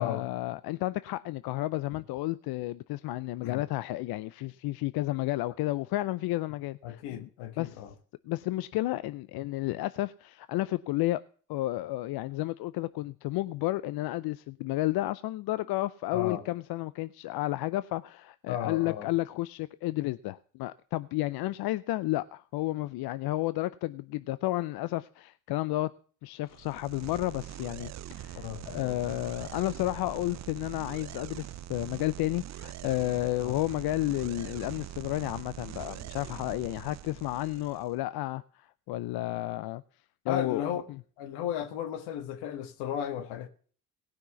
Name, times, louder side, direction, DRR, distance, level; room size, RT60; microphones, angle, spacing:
voice 1, 0.0-7.3 7.6-7.8 8.3-11.2 11.5-25.9 26.2-39.8 40.2-40.6, left 17 dB, 70° left, 0.6 m, -32 dB
voice 2, 6.8-7.9 16.1-16.4 18.5-19.1 28.4-29.0 33.4-33.6 40.3-40.8 41.2-43.5, left 9 dB, 85° left, 1.5 m, -35 dB
sound 1, 26.5-37.9, right 13 dB, 45° right, 0.5 m, -43 dB
17.5 x 6.0 x 7.0 m
supercardioid pair, 75°, 39 cm